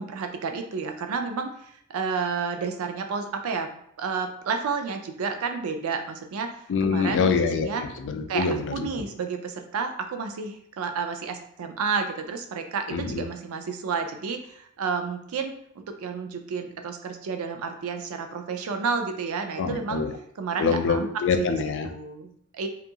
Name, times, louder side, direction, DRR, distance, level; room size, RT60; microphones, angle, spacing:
voice 1, 0.0-3.7 4.0-7.2 7.6-7.8 8.3-20.0 20.4-21.1 21.4-21.6 21.8-22.7, right 5 dB, 70° right, 6 dB, 0.4 m, -31 dB
voice 2, 6.7-8.9 12.9-13.3 19.6-20.1 20.6-21.9, left 5 dB, 60° left, 8 dB, 0.3 m, -25 dB
2.6 x 2.4 x 2.7 m, 0.69 s
head